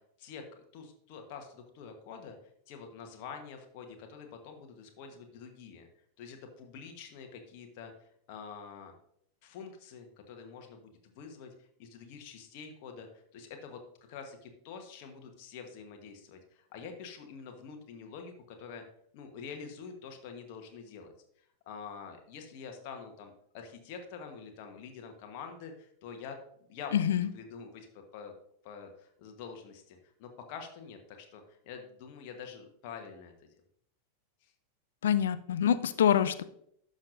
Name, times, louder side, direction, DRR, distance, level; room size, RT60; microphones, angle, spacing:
voice 1, 0.7-2.3 2.7-5.9 6.2-8.9 9.4-13.8 14.1-18.8 19.1-26.4 26.7-28.3 28.6-33.3 34.4-34.5, left 6 dB, 45° left, 4 dB, 1.1 m, -46 dB
voice 2, 26.9-27.3 35.0-36.4, left 9 dB, 60° left, 14 dB, 0.4 m, -26 dB
11.5 x 6.4 x 2.6 m, 0.70 s
figure-of-eight pair, 90°, 0 cm